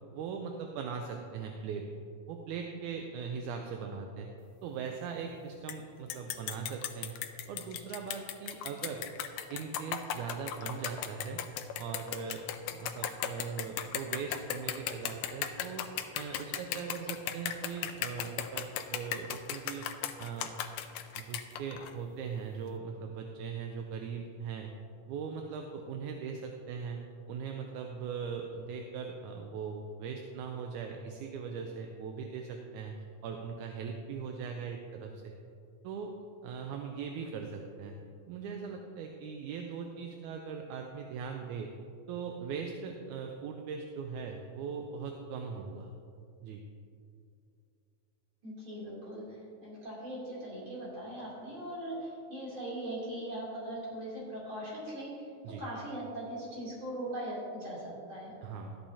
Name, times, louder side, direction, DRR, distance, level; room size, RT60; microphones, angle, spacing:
voice 1, 0.1-1.9 2.3-4.3 4.6-7.2 7.5-9.1 9.5-11.4 11.8-15.8 16.1-18.7 18.9-19.9 20.2-20.5 21.2-24.7 25.1-35.3 35.8-36.1 36.4-38.0 38.3-41.7 42.1-45.9 46.4-46.6 55.4-55.6 58.4-58.8, right 6 dB, 80° right, 3 dB, 2.0 m, -40 dB
sound 1, 5.7-5.8 6.1-21.9, left 10 dB, 85° left, 1.5 m, -36 dB
voice 2, 48.4-55.3 55.6-58.3, right 1 dB, 40° right, -7 dB, 3.6 m, -40 dB
13.0 x 10.0 x 2.8 m, 2.5 s
omnidirectional pair, 3.6 m